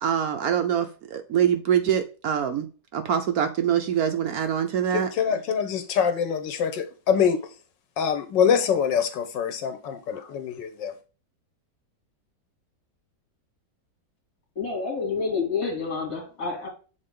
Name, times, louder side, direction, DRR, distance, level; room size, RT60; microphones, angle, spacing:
voice 1, 0.0-2.7 2.9-5.1, right 9 dB, 65° right, 1.1 m, -24 dB
voice 2, 4.9-7.4 8.0-10.9, left 7 dB, 85° left, 1.6 m, -24 dB
voice 3, 14.6-16.7, left 4 dB, 50° left, 2.8 m, -28 dB
6.6 x 4.0 x 3.6 m
omnidirectional pair, 1.9 m